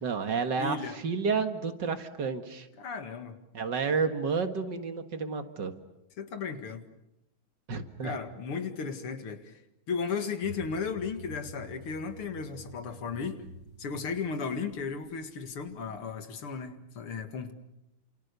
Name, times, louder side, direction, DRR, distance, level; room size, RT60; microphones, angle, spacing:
voice 1, 0.0-0.8 1.0-2.7 3.5-5.7 7.7-8.1, right 5 dB, 55° right, 8 dB, 2.3 m, -30 dB
voice 2, 0.6-1.0 2.8-3.4 6.2-6.8 8.0-9.6 9.9-13.4 13.8-17.5, left 5 dB, 85° left, 8 dB, 2.8 m, -35 dB
sound 1, 10.4-15.9, equal, 30° right, 5.8 m, -48 dB
29.0 x 27.5 x 6.9 m, 0.87 s
omnidirectional pair, 2.3 m